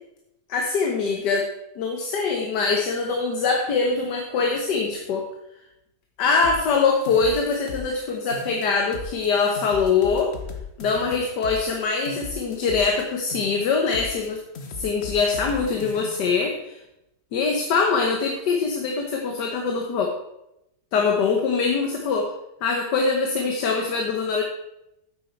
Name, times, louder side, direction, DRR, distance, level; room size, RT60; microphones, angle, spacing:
voice 1, 0.5-1.5 1.8-5.2 6.2-10.3 10.8-14.4 14.8-16.8 17.3-20.1 20.9-22.3 22.6-24.4, left 4 dB, 85° left, 2 dB, 1.6 m, -23 dB
sound 1, 6.4-8.0 8.3-9.3 9.5-13.0 13.3-14.3 14.5-16.4, left 5 dB, 45° left, 1.2 m, -38 dB
9.2 x 8.3 x 4.4 m, 0.86 s
omnidirectional pair, 1.8 m